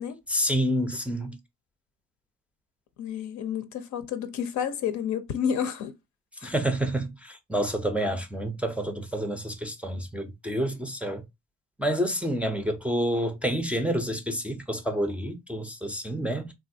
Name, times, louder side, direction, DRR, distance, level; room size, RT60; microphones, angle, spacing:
voice 1, 0.3-1.4 6.4-11.2 11.8-16.5, equal, 5° right, 0.4 m, -28 dB
voice 2, 3.0-5.9 6.4-6.5, left 8 dB, 75° left, 0.6 m, -30 dB
3.3 x 2.4 x 2.6 m
cardioid pair, 90°, 30 cm